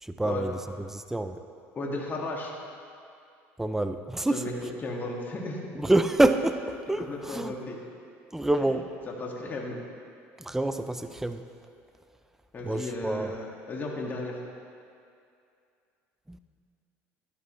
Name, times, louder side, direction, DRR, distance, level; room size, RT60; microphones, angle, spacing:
voice 1, 0.0-0.5 0.9-1.4 3.6-4.4 5.8-7.5 8.3-8.9 10.4-11.4 12.6-13.3 16.3-16.4, right 2 dB, 5° right, 9 dB, 0.5 m, -27 dB
voice 2, 1.7-2.5 4.3-5.6 7.0-7.8 9.1-9.8 12.5-14.4, left 2 dB, 30° left, -2 dB, 1.8 m, -34 dB
12.5 x 11.0 x 3.1 m, 2.4 s
supercardioid pair, 95°, 6 cm